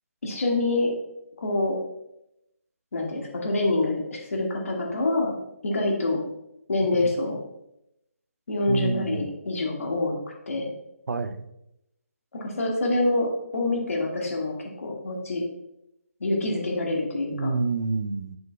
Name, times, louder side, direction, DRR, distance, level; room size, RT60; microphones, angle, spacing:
voice 1, 0.2-0.9 1.4-1.8 2.9-5.3 5.6-6.2 6.7-7.4 8.5-10.2 10.5-10.7 12.3-15.4 16.2-17.5, left 2 dB, 65° left, -1 dB, 1.9 m, -26 dB
voice 2, 8.7-9.3 11.1-11.4 17.3-18.4, right 4 dB, 80° right, 10 dB, 0.5 m, -28 dB
7.1 x 6.3 x 2.3 m, 0.84 s
hypercardioid pair, 170°, 8 cm